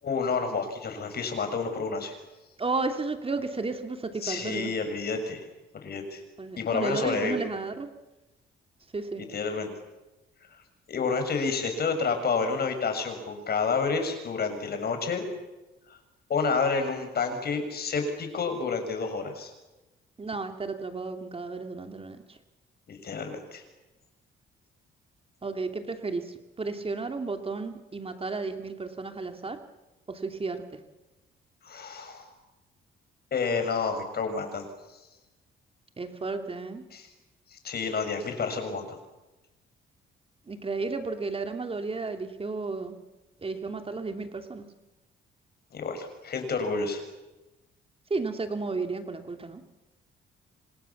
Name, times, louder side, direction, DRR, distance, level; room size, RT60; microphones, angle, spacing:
voice 1, 0.0-2.1 4.2-5.4 5.7-6.2 6.6-7.4 9.2-9.7 10.9-15.2 16.3-19.5 22.9-23.6 31.6-32.3 33.3-34.7 36.9-37.1 37.5-38.9 45.7-47.0, left 4 dB, 50° left, 6 dB, 6.7 m, -29 dB
voice 2, 2.6-4.7 6.4-7.9 8.9-9.2 20.2-22.4 25.4-29.6 30.1-30.8 36.0-36.8 40.5-42.9 43.4-44.6 48.1-49.6, right 3 dB, 30° right, 6 dB, 2.8 m, -33 dB
28.0 x 26.5 x 7.3 m, 1.1 s
cardioid pair, 90°, 20 cm